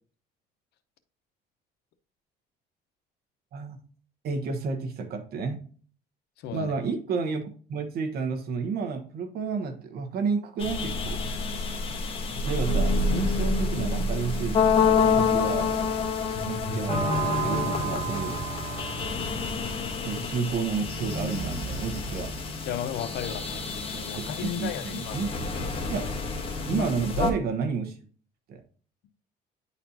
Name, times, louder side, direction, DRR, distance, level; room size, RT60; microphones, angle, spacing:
voice 1, 4.2-5.6 6.5-11.2 12.3-14.7 15.1-15.7 16.4-18.4 20.0-22.3 24.1-25.3 25.9-26.1 26.7-28.0 28.5-28.6, right 5 dB, 65° right, 7 dB, 1.2 m, -31 dB
voice 2, 6.4-6.7 22.6-25.3 26.6-26.9, left 9 dB, 80° left, 10 dB, 0.8 m, -34 dB
sound 1, 10.6-27.3, left 3 dB, 35° left, 1.3 m, -28 dB
10.0 x 4.2 x 2.8 m, 0.43 s
cardioid pair, 110°, 17 cm